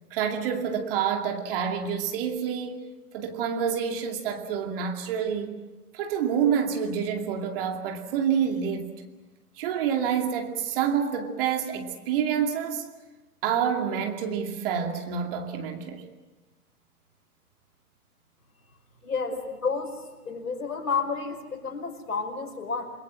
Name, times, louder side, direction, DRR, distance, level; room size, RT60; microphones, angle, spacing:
voice 1, 0.1-2.8 3.1-5.6 5.9-8.9 9.6-12.9 13.4-16.0, right 8 dB, 35° right, 2.6 m, -28 dB
voice 2, 19.0-19.4 19.6-22.9, left 5 dB, 65° left, 5.4 m, -31 dB
29.0 x 21.5 x 6.2 m
figure-of-eight pair, 125°, 46 cm